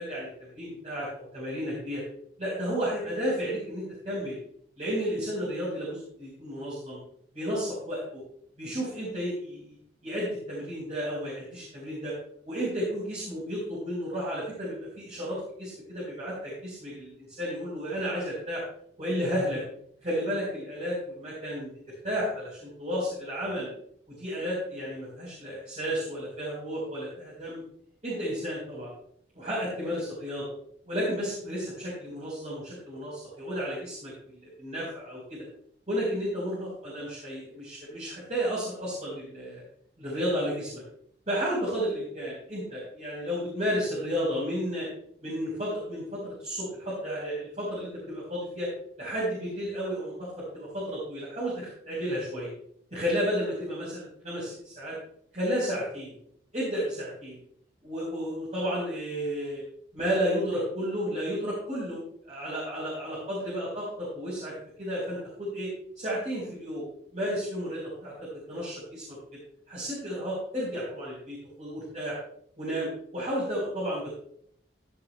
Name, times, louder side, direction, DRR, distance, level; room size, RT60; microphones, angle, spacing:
voice 1, 0.0-2.0 2.4-4.3 4.8-7.0 7.3-8.2 8.6-9.8 10.0-12.1 12.4-18.6 19.0-19.6 20.0-21.7 22.0-23.7 24.2-27.6 28.0-28.9 29.3-30.5 30.9-34.1 34.4-35.4 35.9-39.6 40.0-40.8 41.3-44.9 45.2-48.7 49.0-52.5 52.9-54.9 55.3-56.2 56.5-57.4 57.8-59.6 59.9-62.0 62.3-63.8 64.1-64.5 64.8-65.7 66.0-66.8 67.1-68.1 68.5-69.4 69.7-72.2 72.6-74.1, equal, 40° right, -7 dB, 4.1 m, -32 dB
15.0 x 10.5 x 2.2 m, 0.68 s
head